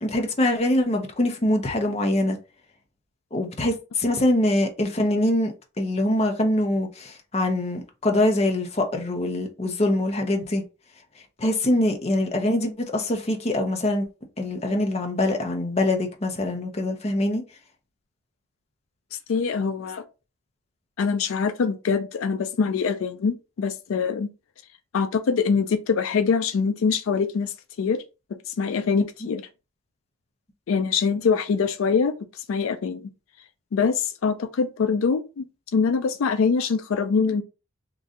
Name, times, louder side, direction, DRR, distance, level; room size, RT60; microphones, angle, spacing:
voice 1, 0.0-2.4 3.3-10.6 11.4-14.1 14.4-17.4 29.2-29.3, left 1 dB, 30° left, 0.7 m, -24 dB
voice 2, 19.1-20.0 21.0-24.3 24.9-28.0 28.5-29.4 30.7-33.1 33.7-35.4 35.7-37.4, left 5 dB, 80° left, 0.4 m, -24 dB
3.0 x 2.6 x 3.6 m
head